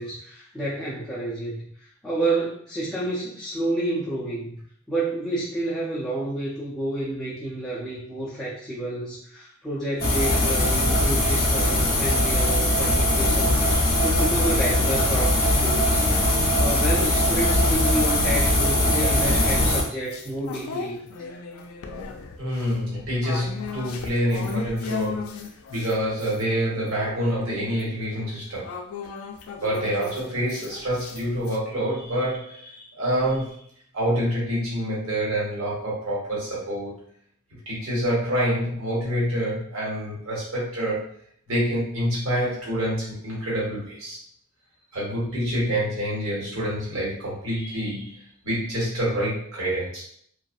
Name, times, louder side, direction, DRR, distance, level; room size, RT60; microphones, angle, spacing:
voice 1, 0.0-4.6 4.9-16.0 16.6-21.4, right 1 dB, ahead, -9 dB, 0.4 m, -30 dB
sound 1, 10.0-19.8, left 1 dB, 45° left, 0.6 m, -21 dB
sound 2, 16.0-17.0 17.5-26.4 26.8-31.6, left 5 dB, 90° left, 0.3 m, -38 dB
voice 2, 22.4-25.3 25.7-28.7 29.5-33.6 33.9-37.0 37.7-41.1 41.5-44.2 44.9-50.0, equal, 80° right, -6 dB, 1.1 m, -27 dB
2.4 x 2.3 x 2.5 m, 0.64 s
head